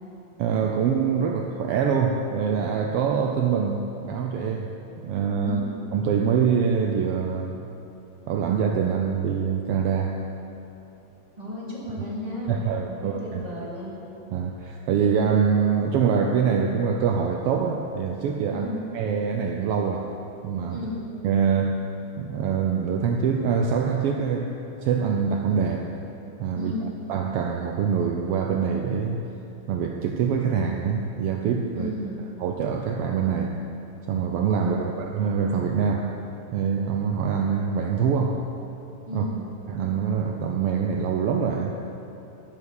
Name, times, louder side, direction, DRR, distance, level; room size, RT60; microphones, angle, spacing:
voice 1, 0.4-4.7 5.0-5.6 5.9-7.7 8.3-10.3 12.5-13.4 14.3-18.7 18.9-20.1 20.4-20.8 21.2-21.8 22.2-25.9 26.4-26.7 27.1-29.2 29.7-31.9 32.4-33.6 34.1-36.1 36.5-38.5 39.1-39.2 39.7-41.7, right 6 dB, 80° right, 3 dB, 1.3 m, -24 dB
voice 2, 11.4-12.6 12.9-13.9 18.5-18.8 20.7-21.1 26.5-27.0 31.7-32.2 34.6-34.9 39.1-39.4, left 1 dB, 15° right, -6 dB, 2.4 m, -33 dB
11.5 x 8.6 x 7.0 m, 2.9 s
omnidirectional pair, 3.3 m